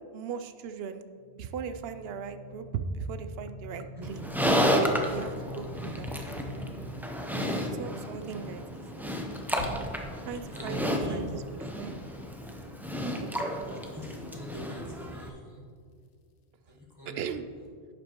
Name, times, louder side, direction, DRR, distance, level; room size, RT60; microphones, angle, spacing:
voice 1, 0.1-1.1 1.3-4.2 5.1-6.1 7.4-9.1 10.2-11.4 11.8-12.0 13.0-13.3 17.1-17.5, right 6 dB, 70° right, 9 dB, 0.8 m, -38 dB
sound 1, 1.2-7.0 9.5-10.3, left 1 dB, 65° left, 0.8 m, -45 dB
Livestock farm animals working animals, 4.0-15.3, equal, ahead, 0.5 m, -32 dB
voice 2, 10.5-11.2 13.9-15.8 16.7-17.2, left 1 dB, 25° right, -4 dB, 1.5 m, -43 dB
10.5 x 7.5 x 3.0 m, 2.1 s
omnidirectional pair, 1.1 m